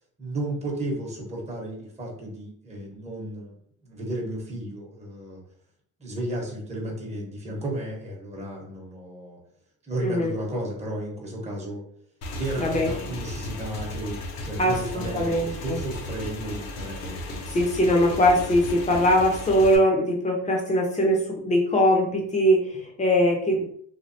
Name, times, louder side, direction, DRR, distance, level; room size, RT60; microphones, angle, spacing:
voice 1, 0.2-3.6 3.8-5.4 6.0-9.4 9.9-11.8 12.4-17.6, right 1 dB, 15° right, -2 dB, 1.0 m, -33 dB
voice 2, 10.0-10.3 12.6-13.1 14.6-15.8 17.5-23.7, equal, 15° left, 1 dB, 0.7 m, -22 dB
Motorcycle / Engine, 12.2-19.8, left 1 dB, 60° left, 0.8 m, -35 dB
3.3 x 2.2 x 2.7 m, 0.64 s
cardioid pair, 110°, 42 cm